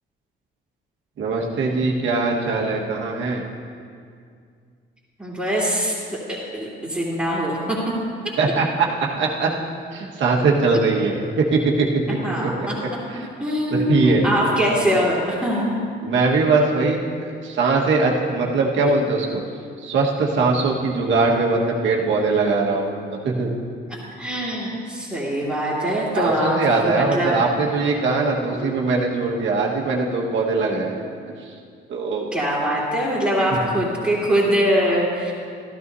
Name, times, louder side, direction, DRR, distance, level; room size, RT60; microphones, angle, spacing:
voice 1, 1.2-3.4 8.4-8.9 9.2-9.5 9.9-13.2 13.7-14.3 16.0-19.4 19.8-22.9 23.2-23.5 26.1-31.0 31.4-31.5 31.9-32.3 33.5-33.6, right 3 dB, 75° right, -1 dB, 1.6 m, -21 dB
voice 2, 5.2-7.6 12.2-12.5 13.4-15.8 24.2-27.4 32.3-35.3, equal, 5° right, -10 dB, 2.8 m, -22 dB
14.5 x 12.0 x 2.8 m, 2.2 s
cardioid pair, 90°, 20 cm